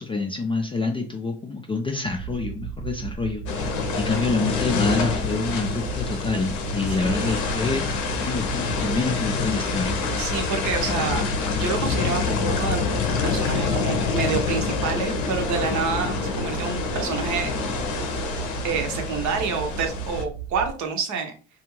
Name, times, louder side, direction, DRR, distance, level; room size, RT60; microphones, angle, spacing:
voice 1, 0.0-3.4 3.9-10.0, left 3 dB, 15° left, 3 dB, 0.3 m, -27 dB
sound 1, 2.0-20.7, right 9 dB, 80° right, 1.0 m, -35 dB
sound 2, 3.5-20.2, left 5 dB, 65° left, 0.7 m, -27 dB
voice 2, 6.9-7.6 10.1-11.2 11.5-12.9 13.2-17.5 18.6-21.4, right 5 dB, 50° right, 5 dB, 0.7 m, -28 dB
2.4 x 2.4 x 3.0 m, 0.37 s
hypercardioid pair, 60°, 38 cm